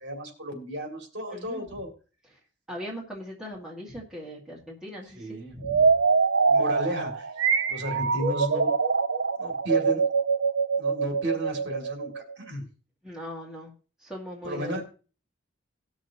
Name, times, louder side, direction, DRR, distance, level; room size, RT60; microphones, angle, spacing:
voice 1, 0.0-1.9 5.1-5.6 6.5-7.3 7.7-8.8 9.4-10.0 10.8-12.7 14.4-14.8, right 1 dB, 55° right, 2 dB, 2.3 m, -33 dB
voice 2, 1.3-1.7 2.7-5.9 13.0-13.7 14.0-14.8, equal, 5° right, -4 dB, 1.8 m, -39 dB
sound 1, 5.6-12.3, right 5 dB, 85° right, 1.0 m, -24 dB
18.5 x 6.3 x 2.8 m, 0.37 s
head